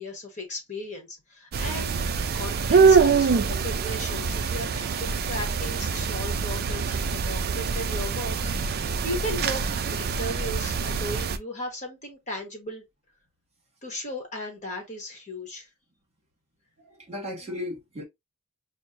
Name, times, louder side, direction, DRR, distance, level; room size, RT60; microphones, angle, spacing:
voice 1, 0.0-2.1 2.3-12.8 13.8-15.7, left 1 dB, 35° left, 1.1 m, -36 dB
sound 1, 1.5-11.4, right 5 dB, 45° right, 0.4 m, -24 dB
voice 2, 16.8-18.0, left 1 dB, 30° right, 1.3 m, -36 dB
6.2 x 2.1 x 2.5 m
head